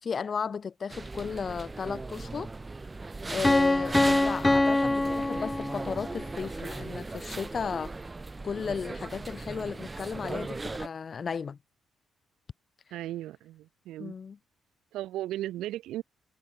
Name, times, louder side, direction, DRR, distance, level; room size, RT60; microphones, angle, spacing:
voice 1, 0.0-2.5 3.3-7.9 8.4-11.6 14.0-14.4, left 6 dB, 45° left, 3.5 m, -34 dB
sound 1, 0.9-10.9, right 3 dB, 20° right, 4.0 m, -38 dB
Piano, 3.4-6.2, left 2 dB, 15° left, 2.4 m, -24 dB
voice 2, 3.9-4.4 12.9-14.1 14.9-16.0, right 14 dB, 85° right, 5.8 m, -37 dB
cardioid pair, 90°, 0 cm